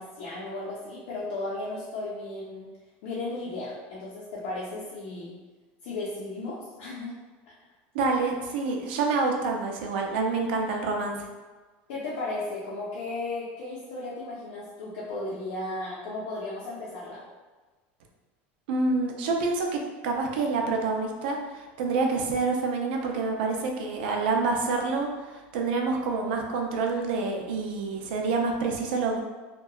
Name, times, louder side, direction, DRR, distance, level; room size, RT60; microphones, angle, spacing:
voice 1, 0.0-2.7 3.0-5.3 5.8-7.1 11.9-17.2, left 2 dB, 65° left, -7 dB, 0.6 m, -35 dB
voice 2, 7.9-11.2 18.7-29.2, right 3 dB, 80° right, 2 dB, 0.4 m, -27 dB
2.7 x 2.2 x 2.3 m, 1.3 s
supercardioid pair, 170°, 6 cm